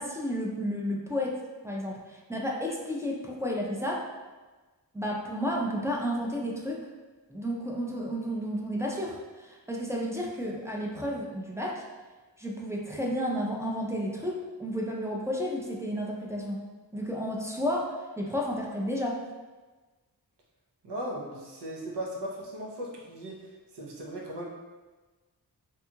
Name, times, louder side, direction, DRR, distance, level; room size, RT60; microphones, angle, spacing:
voice 1, 0.0-4.1 4.9-6.9 7.3-11.8 12.4-16.6 16.9-19.2, equal, 10° right, -2 dB, 0.4 m, -32 dB
voice 2, 20.8-24.4, right 1 dB, 90° right, -2 dB, 0.7 m, -37 dB
2.7 x 2.3 x 2.7 m, 1.3 s
wide cardioid pair, 75°, 40 cm